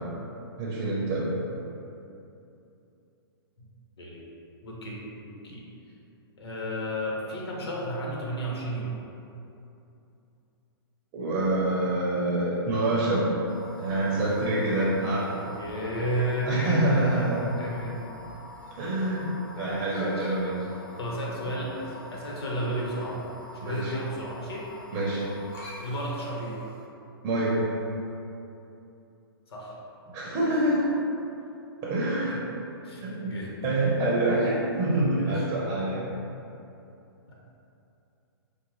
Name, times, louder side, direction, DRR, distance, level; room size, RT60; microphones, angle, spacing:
voice 1, 0.6-1.4 11.1-13.3 13.8-15.4 16.5-17.5 18.7-20.7 23.6-23.9 24.9-25.2 27.2-27.7 30.1-30.9 31.8-32.4 33.0-33.3 33.6-36.1, right 1 dB, 30° right, -6 dB, 0.8 m, -26 dB
voice 2, 4.6-5.6 6.4-8.9 15.3-17.0 17.4-18.0 19.6-20.3 21.0-23.2 23.5-24.7 25.8-26.6 29.5-29.8 32.3-32.4 32.8-33.7 35.1-35.5, right 1 dB, 80° left, -4 dB, 1.0 m, -33 dB
sound 1, 13.5-26.8, left 1 dB, 50° left, 1.1 m, -45 dB
5.0 x 2.1 x 3.1 m, 2.8 s
hypercardioid pair, 140°, 13 cm